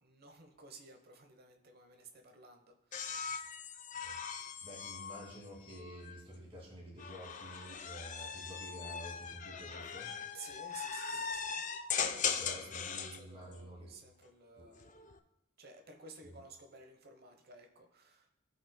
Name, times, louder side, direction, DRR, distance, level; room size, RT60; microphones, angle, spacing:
voice 1, 0.0-3.1 10.3-11.7 12.0-15.0 15.6-18.3, right 4 dB, 50° right, 5 dB, 1.0 m, -54 dB
sound 1, 2.9-6.2 7.0-13.2 14.7-15.2, left 6 dB, 35° left, 0.5 m, -40 dB
voice 2, 4.6-10.1 12.2-13.9 14.6-14.7 16.2-16.4, equal, 25° right, -4 dB, 2.3 m, -50 dB
15.5 x 5.5 x 2.2 m, 0.90 s
head